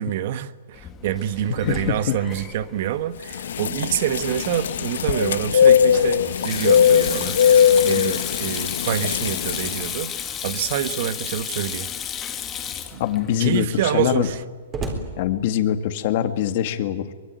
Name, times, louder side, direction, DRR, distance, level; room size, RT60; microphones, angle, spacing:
voice 1, 0.0-7.4 7.8-11.9 12.9-13.0 13.4-14.4, right 11 dB, 45° right, 13 dB, 1.2 m, -26 dB
Sink (filling or washing), 0.7-14.4, left 8 dB, 15° left, 1.8 m, -34 dB
Slam, 1.6-4.1 4.4-4.5 5.0-10.6 11.5-12.0 12.6-12.7 12.9-16.0, right 3 dB, 20° right, 4.0 m, -41 dB
voice 2, 1.7-2.2 13.0-14.3 15.2-17.1, left 11 dB, 40° left, 8 dB, 2.1 m, -23 dB
sound 1, 3.3-9.9, left 8 dB, 85° left, 1.0 m, -19 dB
24.0 x 22.5 x 9.2 m, 1.5 s
hypercardioid pair, 165°, 0 cm